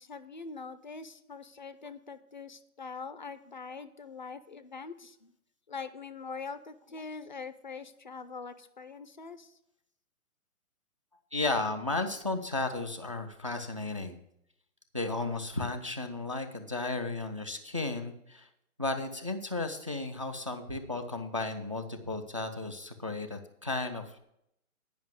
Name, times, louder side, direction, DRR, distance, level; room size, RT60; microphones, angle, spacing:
voice 1, 0.0-5.3 5.7-9.5, left 4 dB, 35° left, 13 dB, 0.4 m, -43 dB
voice 2, 11.3-14.2 14.9-18.5 18.8-24.2, left 2 dB, 25° right, 5 dB, 0.4 m, -34 dB
10.0 x 5.5 x 8.1 m, 0.76 s
hypercardioid pair, 165°, 43 cm